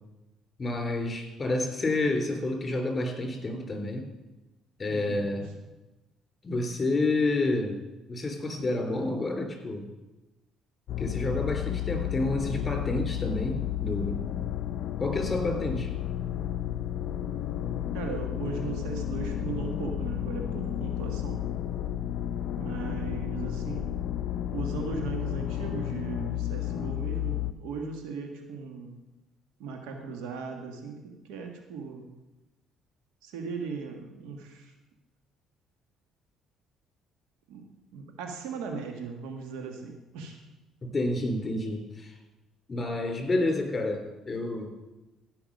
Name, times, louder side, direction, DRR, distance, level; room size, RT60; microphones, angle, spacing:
voice 1, 0.6-4.0 4.8-5.5 6.4-7.8 8.1-9.9 11.0-14.3 15.0-15.9 40.8-42.2 42.7-44.7, left 2 dB, 25° left, 3 dB, 3.4 m, -29 dB
voice 2, 4.9-5.5 17.9-21.5 22.6-24.0 24.5-28.9 29.6-32.1 33.2-34.7 37.5-40.4, right 5 dB, 85° right, 4 dB, 1.6 m, -38 dB
sound 1, 10.9-27.5, left 11 dB, 65° left, 0.4 m, -32 dB
15.5 x 5.8 x 5.3 m, 1.0 s
supercardioid pair, 80°, 0 cm